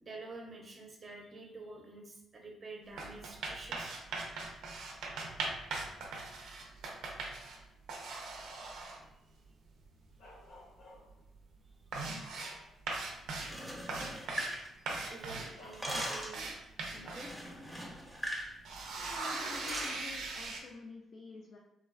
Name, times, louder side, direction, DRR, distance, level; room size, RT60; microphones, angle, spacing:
voice 1, 0.0-4.0 8.8-9.4 15.1-16.5 16.9-17.3, right 3 dB, 35° right, 0 dB, 0.6 m, -49 dB
sound 1, 2.8-7.6 7.9-9.0 10.1-10.2 10.6-11.0 11.3-11.4 11.7-12.6 12.9-13.6 13.9-14.6 14.9-17.3 17.9-18.0 18.4-20.6, right 3 dB, 80° right, 0.5 m, -40 dB
Bark, 10.2-11.3 11.9-13.1 13.5-13.7 14.8-15.0 15.5-16.3 17.0-17.4, left 1 dB, 80° left, 0.7 m, -56 dB
sound 2, 13.3-15.2 15.5-16.4 17.2-18.5 18.8-19.0 19.4-20.0, equal, ahead, 0.7 m, -41 dB
voice 2, 19.0-21.6, left 5 dB, 65° left, 0 dB, 0.3 m, -49 dB
3.3 x 2.2 x 2.3 m, 0.87 s
cardioid pair, 90°, 0 cm